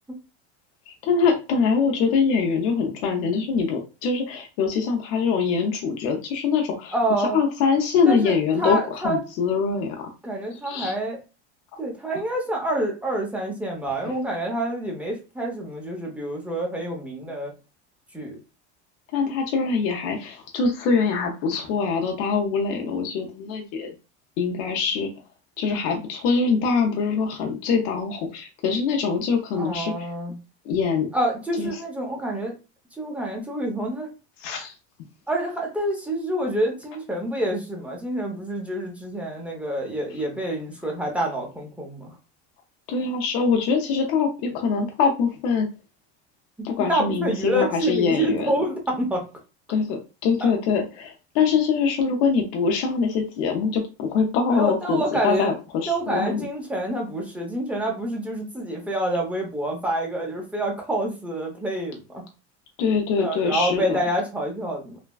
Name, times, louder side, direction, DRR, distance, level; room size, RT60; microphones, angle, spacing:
voice 1, 0.9-6.9 7.3-10.1 10.5-10.9 14.0-14.1 19.1-23.9 24.4-25.1 25.6-30.1 30.7-31.1 31.6-31.7 34.4-34.7 42.9-45.7 46.6-48.5 49.7-56.4 62.8-64.0, left 5 dB, 65° left, 2 dB, 0.7 m, -23 dB
voice 2, 6.9-7.4 8.0-9.2 10.2-11.2 11.8-17.5 18.1-18.4 29.6-30.4 31.1-32.5 33.0-34.1 35.3-42.1 46.6-49.2 54.5-55.5 55.9-62.2 63.2-65.0, right 1 dB, 5° right, -1 dB, 0.8 m, -27 dB
3.2 x 2.1 x 2.3 m, 0.30 s
supercardioid pair, 125°, 33 cm